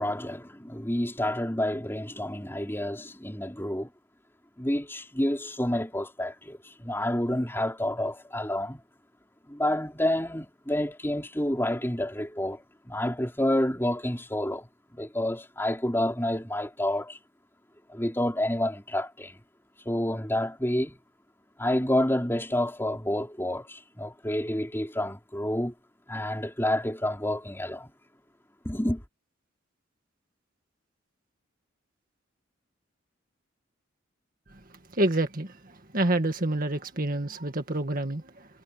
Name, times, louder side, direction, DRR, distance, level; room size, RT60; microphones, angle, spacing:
voice 1, 0.0-3.9 4.6-8.8 9.5-17.2 17.9-19.4 19.8-21.0 21.6-25.7 26.1-27.9 28.6-29.0, left 1 dB, 10° left, 4.3 m, -29 dB
voice 2, 34.9-38.5, right 1 dB, 45° right, 2.0 m, -28 dB
head